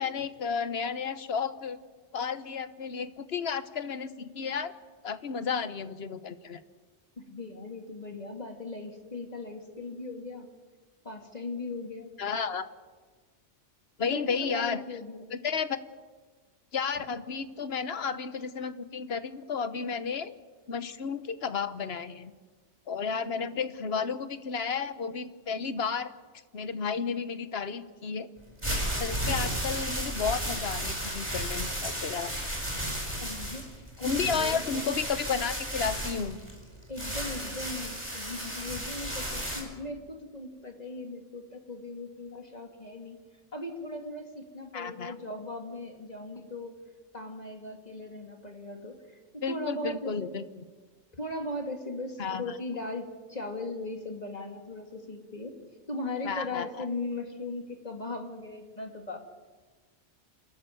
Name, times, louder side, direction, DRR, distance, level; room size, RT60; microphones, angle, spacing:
voice 1, 0.0-1.8 2.1-4.7 5.0-6.6 12.2-12.7 14.0-14.8 15.3-15.8 16.7-20.3 20.7-22.3 22.9-26.1 26.5-28.3 29.0-32.3 34.0-36.4 44.7-45.1 49.4-50.4 52.2-52.6 56.2-56.9, left 6 dB, 65° left, 12 dB, 1.3 m, -32 dB
voice 2, 7.2-10.5 11.0-12.1 14.1-15.3 23.3-23.6 33.2-34.9 36.9-43.2 43.5-46.8 47.1-49.0 49.3-50.3 51.1-55.6 55.9-59.2, left 2 dB, 35° left, 4 dB, 2.4 m, -38 dB
sound 1, 28.4-39.6, equal, 25° right, 5.2 m, -33 dB
28.5 x 13.0 x 9.2 m, 1.4 s
omnidirectional pair, 1.2 m